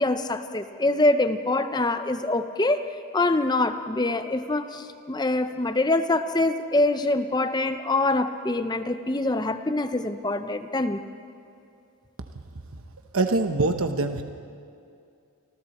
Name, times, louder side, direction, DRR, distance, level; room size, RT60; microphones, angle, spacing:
voice 1, 0.0-11.0, left 2 dB, 20° left, 9 dB, 0.6 m, -25 dB
voice 2, 13.1-14.2, right 2 dB, 70° right, 6 dB, 1.0 m, -23 dB
30.0 x 25.0 x 4.3 m, 2.5 s
head